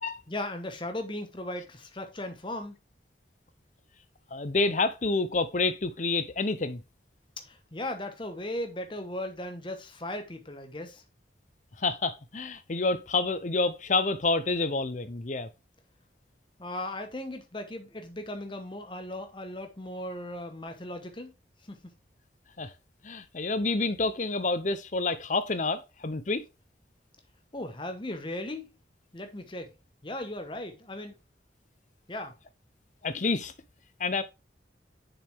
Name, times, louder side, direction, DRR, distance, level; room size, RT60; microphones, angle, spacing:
voice 1, 0.3-2.7 7.4-11.0 16.6-21.3 21.7-21.8 27.5-28.7 29.1-29.7 30.0-31.2 32.1-32.3, left 1 dB, 30° left, 1.1 m, -37 dB
voice 2, 4.3-6.8 11.8-15.5 22.6-22.7 23.0-26.4 33.0-33.5 34.0-34.2, left 3 dB, 45° left, 0.7 m, -28 dB
7.0 x 5.9 x 3.5 m
head